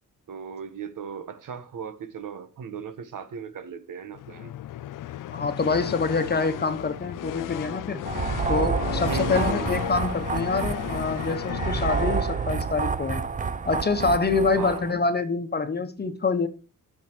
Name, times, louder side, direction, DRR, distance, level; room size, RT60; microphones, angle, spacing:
voice 1, 0.3-4.5 9.1-9.7 14.6-14.8, right 6 dB, 70° right, 1.3 m, -36 dB
sound 1, 4.1-12.8, left 13 dB, 75° left, 0.5 m, -34 dB
voice 2, 5.3-8.1 8.5-13.3 13.7-16.5, left 4 dB, 30° left, 1.1 m, -26 dB
sound 2, 8.1-14.9, right 5 dB, 25° right, 0.6 m, -29 dB
9.4 x 6.6 x 4.6 m
wide cardioid pair, 130°, 33 cm